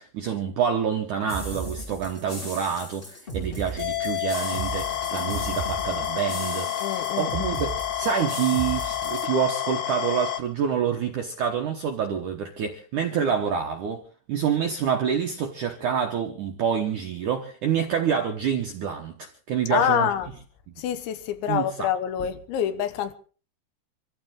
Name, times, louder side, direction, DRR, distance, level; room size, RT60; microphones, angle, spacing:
voice 1, 0.0-6.7 7.2-14.0 14.3-20.1 20.7-20.8 21.5-21.9 22.2-22.3, right 7 dB, 75° right, 1.8 m, -27 dB
sound 1, 1.3-9.3, right 2 dB, 30° left, 1.1 m, -36 dB
sound 2, 3.8-10.4, left 11 dB, 65° left, 2.1 m, -29 dB
voice 2, 6.8-7.5 19.7-20.3 20.8-23.2, left 9 dB, 80° left, 3.5 m, -26 dB
25.5 x 14.5 x 3.8 m
omnidirectional pair, 5.2 m